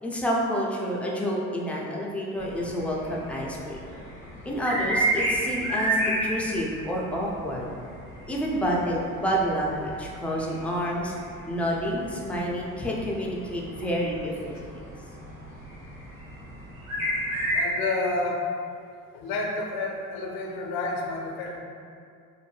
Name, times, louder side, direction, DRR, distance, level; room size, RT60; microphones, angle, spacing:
voice 1, 0.0-4.0 4.4-7.7 8.3-11.1 11.5-14.6, equal, 5° left, -3 dB, 0.3 m, -29 dB
sound 1, 2.4-17.6, right 1 dB, 85° right, 1.1 m, -33 dB
voice 2, 17.5-18.5 19.1-21.6, left 2 dB, 65° left, 0 dB, 0.5 m, -30 dB
2.6 x 2.1 x 3.1 m, 2.3 s
hypercardioid pair, 55°, 41 cm